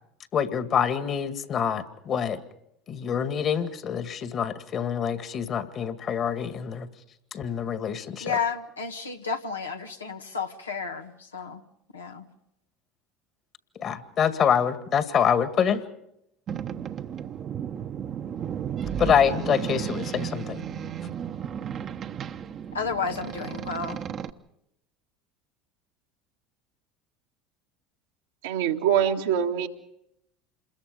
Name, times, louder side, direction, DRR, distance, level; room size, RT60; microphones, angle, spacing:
voice 1, 0.3-2.4 2.9-6.9 7.3-8.4 13.8-15.8 19.0-20.7, left 8 dB, 45° left, 10 dB, 2.0 m, -26 dB
voice 2, 8.2-11.6 11.9-12.2 22.7-24.0, left 5 dB, 90° left, 4 dB, 1.4 m, -32 dB
Boat Water vehicle, 16.5-24.3, right 9 dB, 40° right, 1.0 m, -34 dB
voice 3, 28.4-29.7, right 9 dB, 75° right, 2 dB, 1.8 m, -24 dB
27.5 x 21.5 x 5.3 m, 0.79 s
hypercardioid pair, 70°, 0 cm